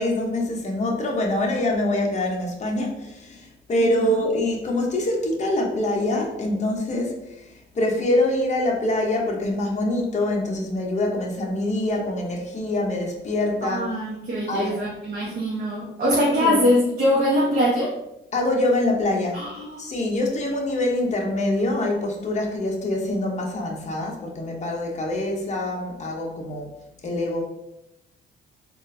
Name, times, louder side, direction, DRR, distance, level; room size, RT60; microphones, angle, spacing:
voice 1, 0.0-7.5 7.7-13.8 14.5-14.7 16.3-16.6 18.3-19.4 19.8-26.7 27.0-27.4, left 1 dB, 35° left, 0 dB, 0.8 m, -25 dB
voice 2, 3.8-4.1 13.6-17.9 19.3-19.8, equal, 45° right, -6 dB, 0.9 m, -23 dB
3.6 x 2.5 x 2.6 m, 0.87 s
cardioid pair, 90°, 20 cm